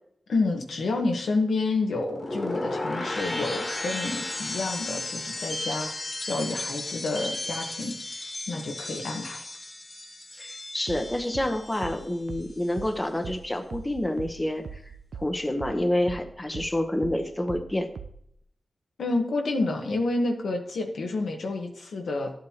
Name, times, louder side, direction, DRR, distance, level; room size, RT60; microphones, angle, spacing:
voice 1, 0.3-5.9 6.2-7.9 8.5-9.4 19.0-22.3, left 3 dB, 90° left, 2 dB, 1.2 m, -29 dB
sound 1, 2.0-12.1 12.4-12.9, left 2 dB, 45° left, 1.6 m, -34 dB
voice 2, 10.3-14.8 15.1-17.9, left 1 dB, 20° left, 6 dB, 1.0 m, -28 dB
sound 2, 10.9-18.3, right 6 dB, 85° right, 0.6 m, -40 dB
11.5 x 7.8 x 2.9 m, 0.72 s
cardioid pair, 65°, 0 cm